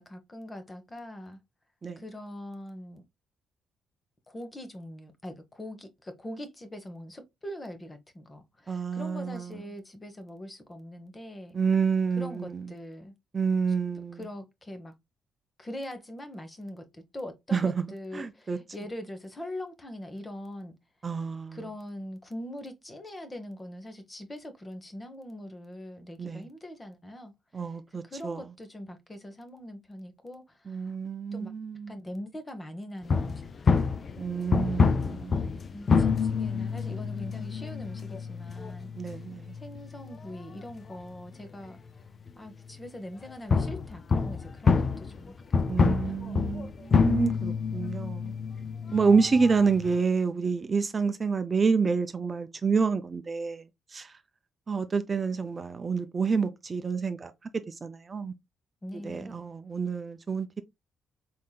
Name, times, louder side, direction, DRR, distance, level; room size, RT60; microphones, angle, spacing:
voice 1, 0.0-1.4 2.0-3.0 4.3-11.6 12.2-13.2 14.1-15.0 15.6-20.7 21.5-31.0 31.3-31.5 31.9-33.9 35.0-35.3 35.7-39.2 39.5-41.8 42.4-46.5 58.8-59.5, left 1 dB, 25° left, 0.9 m, -42 dB
voice 2, 8.7-9.5 11.5-12.7 13.3-14.2 17.5-17.8 18.1-18.6 21.0-21.6 26.2-26.4 27.5-28.4 30.7-31.9 34.2-35.5 39.0-39.6 45.7-48.3 48.9-53.6 53.9-54.1 54.7-57.3 57.7-58.3 59.0-60.6, right 5 dB, 35° right, 0.4 m, -28 dB
sound 1, 33.1-41.0 41.3-41.4 42.3-42.4 43.5-50.0, left 5 dB, 40° left, 0.4 m, -27 dB
4.2 x 3.6 x 2.2 m
cardioid pair, 90°, 0 cm